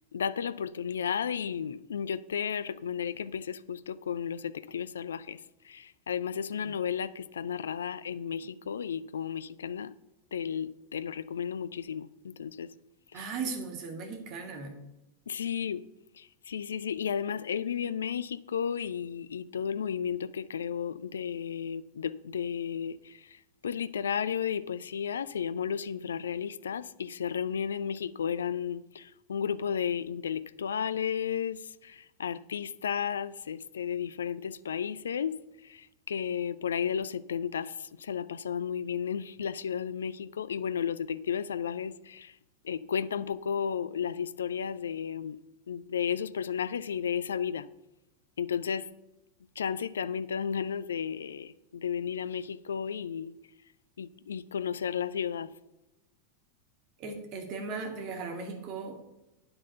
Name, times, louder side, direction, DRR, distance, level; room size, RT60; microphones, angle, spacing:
voice 1, 0.1-5.4 5.7-9.9 10.3-12.7 15.3-15.8 16.5-23.0 23.6-29.0 29.3-31.6 32.2-35.3 36.1-37.7 38.0-42.3 42.7-45.4 45.7-47.6 48.4-48.8 49.6-53.3 54.0-55.5, left 7 dB, 65° left, 0.4 m, -33 dB
voice 2, 13.1-14.8 57.0-59.0, right 4 dB, 40° right, 2.2 m, -37 dB
9.7 x 7.9 x 5.6 m
figure-of-eight pair, 90°, 0 cm